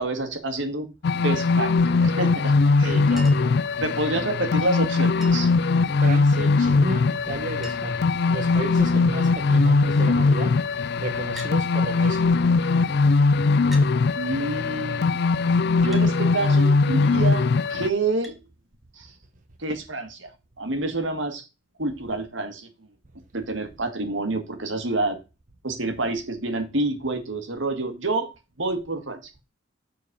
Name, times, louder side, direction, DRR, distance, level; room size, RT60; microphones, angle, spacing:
voice 1, 0.0-2.9 3.8-5.5 14.2-15.1 15.8-18.4 19.0-19.1 19.6-20.3 20.6-21.5 21.8-22.7 23.3-25.2 25.6-28.3 28.6-29.2, right 2 dB, 70° right, 1.9 m, -28 dB
sound 1, 1.0-17.9, left 3 dB, 55° left, 0.4 m, -21 dB
voice 2, 2.8-3.6 3.8-4.2 6.0-10.6 11.0-12.3, right 2 dB, 40° right, 0.9 m, -33 dB
Chink clink, 3.2-3.6 5.2-5.6 7.0-7.1 7.3-7.4 7.6-8.1 8.8-9.2 11.4-11.6 12.7-12.8 13.7-13.9 15.9-16.1 18.2-18.4 19.8-19.9, equal, ahead, 1.5 m, -42 dB
7.4 x 4.6 x 6.7 m
head